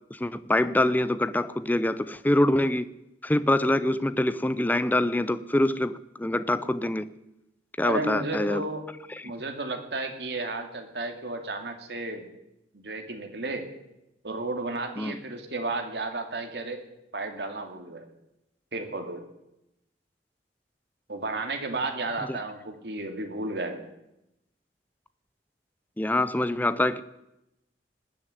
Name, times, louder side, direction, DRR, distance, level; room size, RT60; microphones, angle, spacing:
voice 1, 0.1-2.9 3.2-7.1 7.8-8.6 15.0-15.2 22.3-22.4 26.0-27.0, left 1 dB, 10° left, 14 dB, 0.5 m, -25 dB
voice 2, 7.8-8.8 9.2-12.2 12.7-13.7 14.2-16.8 17.1-18.0 18.7-19.2 21.1-23.9, right 2 dB, 70° right, 5 dB, 2.3 m, -33 dB
19.5 x 6.7 x 9.2 m, 0.88 s
head